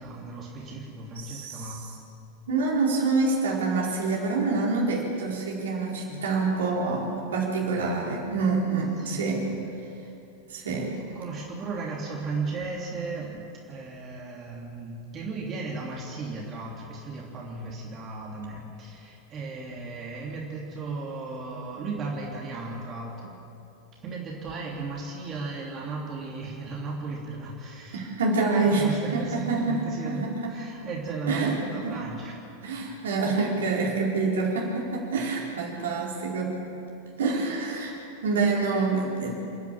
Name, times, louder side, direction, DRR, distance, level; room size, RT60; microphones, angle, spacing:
voice 1, 0.0-1.8 6.1-6.2 9.0-9.5 11.1-13.4 13.7-23.3 24.0-28.1 28.5-32.3, right 3 dB, 30° right, -2 dB, 3.2 m, -35 dB
voice 2, 1.2-1.9 2.5-9.5 10.5-11.0 27.9-30.6 31.3-32.0 32.6-36.6 37.2-38.0 38.2-39.3, right 3 dB, 65° right, -3 dB, 4.4 m, -27 dB
28.5 x 10.5 x 8.9 m, 2.8 s
figure-of-eight pair, 90°, 0 cm